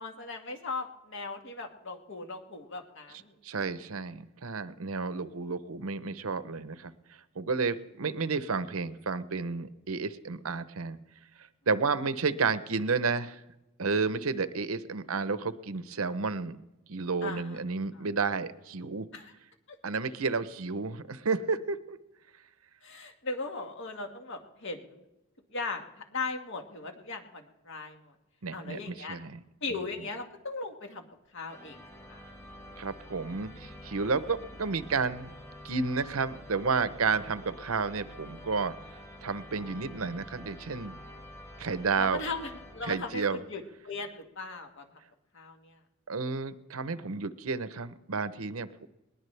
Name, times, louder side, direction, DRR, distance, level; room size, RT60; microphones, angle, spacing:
voice 1, 0.0-3.3 17.2-17.6 17.9-18.0 19.1-19.3 19.7-19.8 22.8-25.0 25.5-28.1 28.5-29.2 29.6-31.0 31.3-31.8 32.1-32.2 42.0-44.9 45.3-45.8, left 3 dB, 60° left, 4 dB, 1.8 m, -38 dB
voice 2, 3.4-6.9 7.4-11.0 11.7-13.4 13.8-16.6 16.9-19.1 19.8-22.0 28.4-29.4 32.8-35.3 35.6-38.7 39.2-41.0 41.6-42.2 42.8-43.4 46.1-48.9, right 4 dB, 85° right, 13 dB, 0.8 m, -31 dB
sound 1, 31.5-43.4, left 1 dB, 15° left, 1.6 m, -48 dB
20.0 x 20.0 x 3.4 m, 0.96 s
head